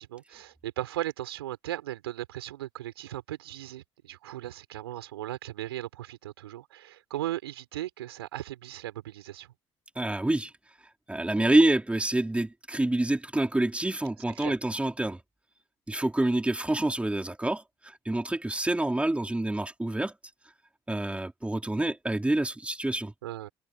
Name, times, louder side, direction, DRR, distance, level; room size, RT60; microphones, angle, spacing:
voice 1, 0.0-9.5 14.4-14.5 23.2-23.5, right 14 dB, 75° right, 5.0 m, -37 dB
voice 2, 9.9-10.5 11.1-15.2 15.9-20.1 20.9-23.1, right 1 dB, 10° right, 4.7 m, -27 dB
figure-of-eight pair, 60°, 13 cm